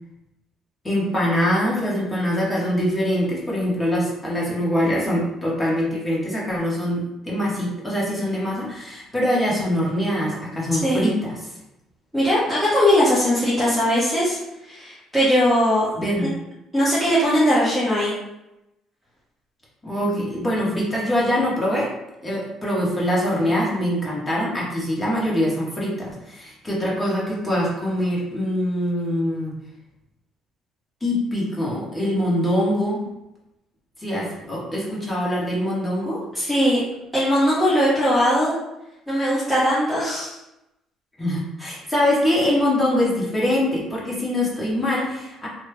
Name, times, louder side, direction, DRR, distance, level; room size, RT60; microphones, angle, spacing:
voice 1, 0.8-11.5 15.9-16.4 19.8-21.9 22.2-29.5 31.0-33.0 34.0-36.2 41.2-45.5, left 1 dB, 15° left, -6 dB, 1.4 m, -23 dB
voice 2, 12.1-14.4 14.6-15.9 16.2-16.3 16.7-18.1 36.3-36.8 37.1-38.5 39.1-40.4, equal, ahead, -9 dB, 1.0 m, -19 dB
3.2 x 2.3 x 3.3 m, 0.91 s
cardioid pair, 90°, 0 cm